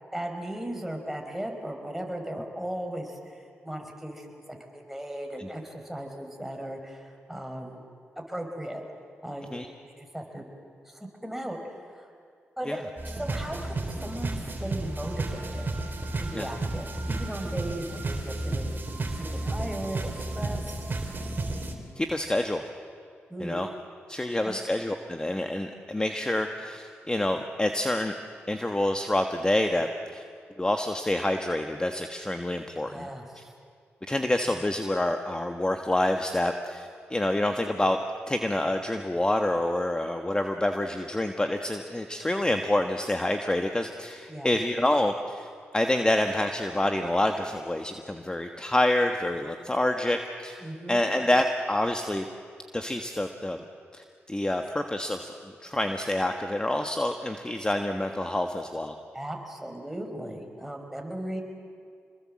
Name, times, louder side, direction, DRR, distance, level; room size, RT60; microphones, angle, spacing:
voice 1, 0.1-7.8 8.1-8.8 9.2-9.5 9.8-10.5 10.8-12.1 12.6-18.8 19.1-20.7 23.3-23.6 24.4-24.6 32.8-33.5 44.3-44.5 50.6-51.1 59.1-61.4, right 1 dB, 5° right, 3 dB, 5.0 m, -37 dB
sound 1, 13.0-21.8, right 2 dB, 40° right, 3.9 m, -32 dB
voice 2, 22.0-22.6 23.4-23.7 24.1-28.1 28.5-30.2 30.6-33.1 34.1-38.0 38.3-45.5 45.7-52.3 52.7-53.6 53.9-58.9, left 1 dB, 20° left, 5 dB, 1.5 m, -27 dB
26.5 x 21.5 x 7.7 m, 2.2 s
supercardioid pair, 50°, 5 cm